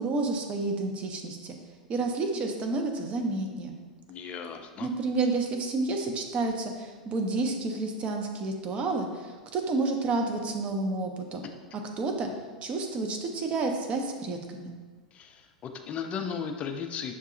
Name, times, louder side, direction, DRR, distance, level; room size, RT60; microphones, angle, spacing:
voice 1, 0.0-1.6 1.9-3.7 4.8-11.4 12.0-12.3 12.6-14.7, right 3 dB, 30° right, 3 dB, 0.6 m, -30 dB
voice 2, 4.1-4.9 15.1-17.1, left 6 dB, 30° left, 6 dB, 0.4 m, -36 dB
6.4 x 2.7 x 2.5 m, 1.4 s
figure-of-eight pair, 90°, 4 cm